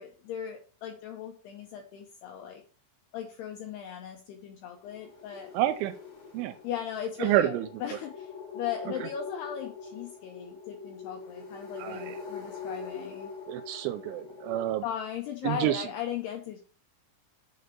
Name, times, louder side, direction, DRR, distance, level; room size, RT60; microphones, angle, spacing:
voice 1, 0.0-2.6 3.1-5.5 6.6-13.3 14.8-16.6, left 9 dB, 80° left, 2 dB, 2.4 m, -38 dB
sound 1, 4.7-14.6, left 5 dB, 35° left, 2.8 m, -43 dB
voice 2, 5.5-5.9 6.3-6.5 7.2-7.7 11.8-12.2 13.5-14.8 15.4-15.9, right 13 dB, 85° right, 10 dB, 2.8 m, -28 dB
6.7 x 4.6 x 6.8 m, 0.39 s
omnidirectional pair, 5.7 m